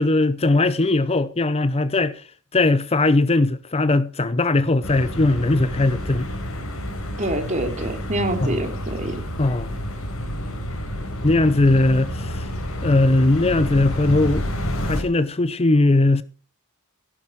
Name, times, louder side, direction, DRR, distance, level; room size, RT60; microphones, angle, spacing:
voice 1, 0.0-2.2 2.5-6.3 8.4-8.6 9.4-9.7 11.2-12.5 12.8-14.4 14.8-16.2, left 2 dB, 30° left, 0.6 m, -19 dB
sound 1, 4.8-15.0, equal, 65° left, 4.6 m, -29 dB
voice 2, 7.2-9.2, right 1 dB, 35° right, 3.3 m, -26 dB
16.0 x 11.0 x 4.7 m
head